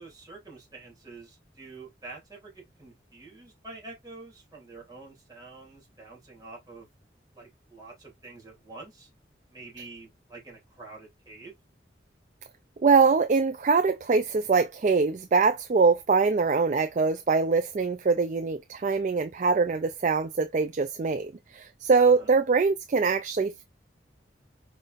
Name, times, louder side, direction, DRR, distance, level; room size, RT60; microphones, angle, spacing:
voice 1, 0.0-6.9 7.3-9.1 9.5-11.6 22.0-22.3, right 3 dB, 20° right, 2.9 m, -47 dB
voice 2, 12.8-23.6, right 4 dB, 40° right, 0.4 m, -23 dB
5.3 x 3.9 x 2.5 m
head